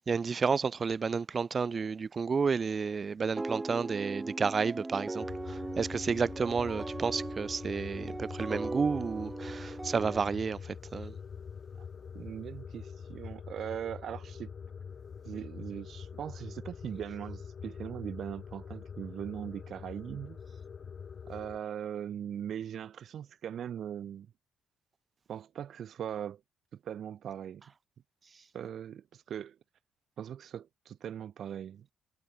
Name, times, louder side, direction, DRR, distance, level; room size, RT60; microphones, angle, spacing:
voice 1, 0.1-10.6 10.9-11.1, right 5 dB, 40° right, 1.5 m, -31 dB
sound 1, 3.4-10.2, right 2 dB, 15° right, 5.7 m, -39 dB
sound 2, 5.2-21.6, left 6 dB, 45° left, 1.7 m, -45 dB
voice 2, 12.1-14.5 15.2-20.4 21.3-24.3 25.3-26.4 26.7-27.6 28.5-29.6 30.2-31.9, right 9 dB, 65° right, 1.3 m, -40 dB
cardioid pair, 90°, 0 cm